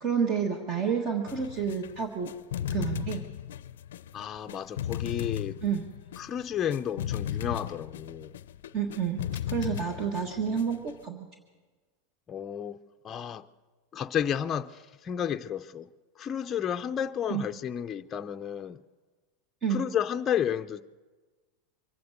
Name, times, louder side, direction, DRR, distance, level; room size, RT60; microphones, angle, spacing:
voice 1, 0.0-2.3 2.7-3.2 5.6-5.8 8.7-9.2 9.5-11.3 17.3-17.4 19.6-19.8, right 7 dB, 35° right, 1.5 m, -29 dB
sound 1, 1.3-11.0, left 11 dB, 85° left, 0.5 m, -36 dB
voice 2, 4.1-5.6 6.2-8.4 12.3-12.8 13.0-13.5 13.9-15.9 16.2-18.8 19.7-20.8, left 9 dB, 25° left, 0.5 m, -32 dB
24.0 x 9.3 x 6.5 m
supercardioid pair, 130°, 0 cm